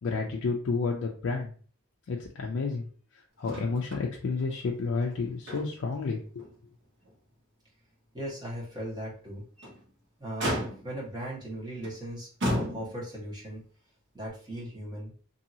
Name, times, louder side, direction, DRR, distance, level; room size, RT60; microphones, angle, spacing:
voice 1, 0.0-1.5 2.1-2.9 3.4-6.4, left 4 dB, 55° left, 0 dB, 0.4 m, -30 dB
Motor vehicle (road), 3.4-4.1 4.4-4.5 5.0-6.0 6.4-6.5 7.1-7.2 9.4-9.8 10.4-11.1 11.8-12.0 12.4-13.2 14.3-14.4, equal, 55° right, 1.2 m, -33 dB
voice 2, 8.1-9.4 10.2-13.6 14.1-15.1, right 1 dB, 20° right, -6 dB, 1.3 m, -38 dB
2.7 x 2.7 x 2.7 m, 0.43 s
head